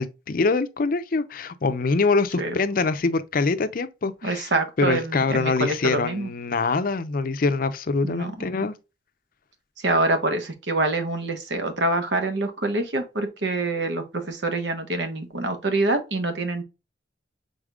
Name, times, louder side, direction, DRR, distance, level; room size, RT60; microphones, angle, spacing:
voice 1, 0.0-4.5 4.8-8.7, left 4 dB, 50° left, 0.5 m, -24 dB
voice 2, 4.2-6.3 8.0-8.3 9.8-16.6, right 2 dB, 70° right, 1.1 m, -25 dB
5.0 x 4.0 x 2.3 m
head